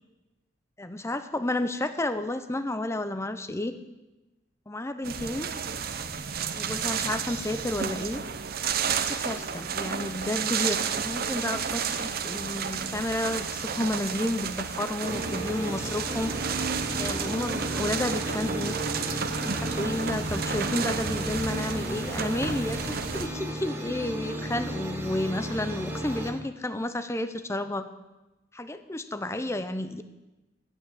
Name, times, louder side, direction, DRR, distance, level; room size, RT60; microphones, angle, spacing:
voice 1, 0.8-3.8 4.7-5.5 6.5-8.2 8.9-16.3 17.0-18.7 19.4-27.9 28.5-30.0, left 1 dB, 15° left, 10 dB, 0.6 m, -31 dB
sound 1, 5.0-23.3, right 6 dB, 55° right, 0.7 m, -32 dB
sound 2, 15.0-26.3, right 1 dB, 10° right, 2.1 m, -34 dB
9.8 x 8.8 x 7.2 m, 1.0 s
head